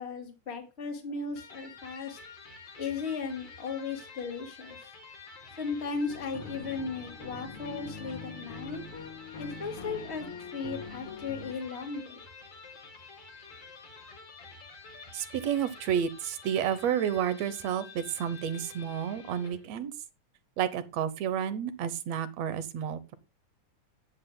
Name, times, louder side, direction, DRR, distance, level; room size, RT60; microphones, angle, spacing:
voice 1, 0.0-2.2 2.8-4.8 5.6-8.8 9.4-12.2, left 4 dB, 25° left, 3 dB, 2.0 m, -36 dB
Electric guitar, 1.3-19.7, left 4 dB, 90° left, 5.6 m, -49 dB
sound 1, 6.1-11.5, left 5 dB, 55° left, 2.0 m, -43 dB
voice 2, 15.1-19.9 20.6-23.1, right 9 dB, 70° right, 13 dB, 1.9 m, -31 dB
14.5 x 10.0 x 2.2 m, 0.27 s
omnidirectional pair, 3.4 m